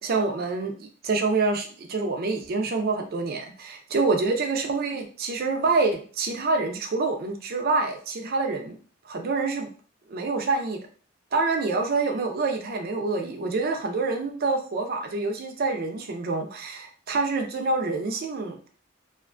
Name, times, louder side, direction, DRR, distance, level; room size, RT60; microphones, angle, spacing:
voice 1, 0.0-8.8 9.1-9.7 10.1-10.8 11.3-18.7, right 3 dB, 50° right, 4 dB, 0.4 m, -26 dB
2.4 x 2.2 x 2.4 m, 0.41 s
head